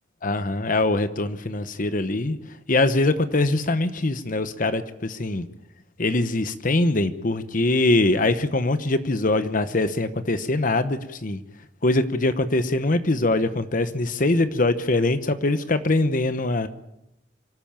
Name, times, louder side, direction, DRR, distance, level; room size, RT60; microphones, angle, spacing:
voice 1, 0.2-5.5 6.0-11.4 11.8-16.7, left 2 dB, 45° left, 11 dB, 1.0 m, -23 dB
25.0 x 13.5 x 9.0 m, 0.86 s
head